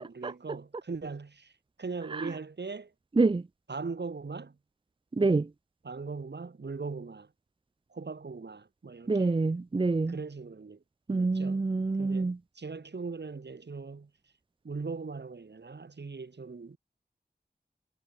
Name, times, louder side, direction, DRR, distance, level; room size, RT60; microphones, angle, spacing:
voice 1, 0.0-1.5 1.8-2.9 3.7-4.6 5.2-5.4 5.8-7.3 7.9-9.3 10.1-10.8 11.1-11.6 12.0-14.1 14.6-16.8, right 4 dB, 85° right, 2.0 m, -40 dB
voice 2, 3.2-3.5 5.1-5.5 9.1-10.2 11.1-12.4, right 3 dB, 30° right, 0.5 m, -26 dB
wide cardioid pair, 65°, 17 cm